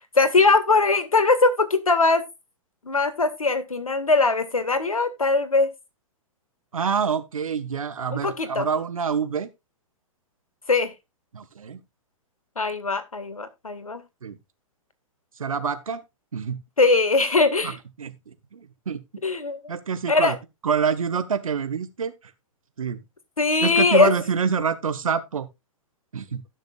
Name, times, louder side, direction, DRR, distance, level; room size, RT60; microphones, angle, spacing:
voice 1, 0.2-2.2 2.9-5.7 8.1-8.7 10.7-10.9 12.6-14.0 16.8-17.8 19.2-19.7 20.1-20.3 23.4-24.1, left 3 dB, 90° left, 1.9 m, -21 dB
voice 2, 6.7-9.5 11.3-11.8 14.2-14.4 15.4-16.0 16.3-16.6 17.6-19.0 19.7-20.4 20.6-22.1 22.8-23.0 23.6-25.5 26.1-26.4, right 6 dB, 75° right, 1.5 m, -26 dB
17.0 x 6.6 x 2.4 m
figure-of-eight pair, 115°, 18 cm